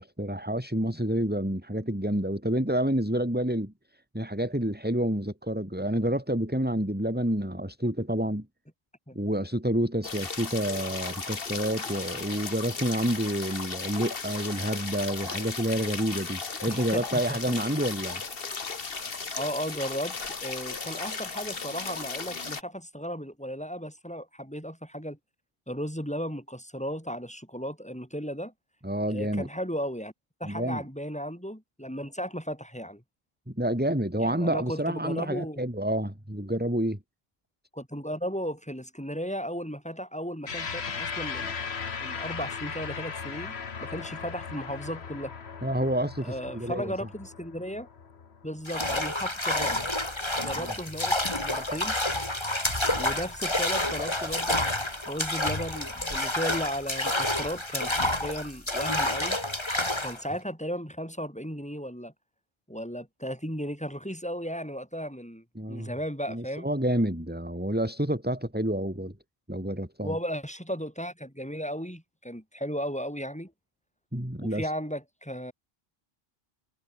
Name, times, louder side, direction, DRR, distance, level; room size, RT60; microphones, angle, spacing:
voice 1, 0.0-8.5 9.1-18.2 28.8-29.5 30.4-30.8 33.5-37.0 45.6-46.9 50.6-50.7 65.6-65.9 66.3-69.2 69.5-70.2 74.1-74.7, right 1 dB, 10° right, 3.8 m, -29 dB
sound 1, 10.0-22.6, left 4 dB, 65° left, 1.9 m, -36 dB
voice 2, 16.6-17.0 17.3-17.6 19.4-25.2 25.7-28.5 29.1-30.1 30.4-33.0 34.2-35.6 37.7-41.6 42.0-43.5 43.8-45.3 46.2-47.9 48.4-49.8 50.4-51.9 53.0-59.4 60.0-62.1 62.7-66.7 70.0-73.5 74.4-75.5, equal, 5° left, 8.0 m, -35 dB
sound 2, 40.5-49.1, left 5 dB, 90° left, 1.7 m, -37 dB
sound 3, 48.7-60.2, left 1 dB, 25° left, 3.2 m, -29 dB
omnidirectional pair, 1.0 m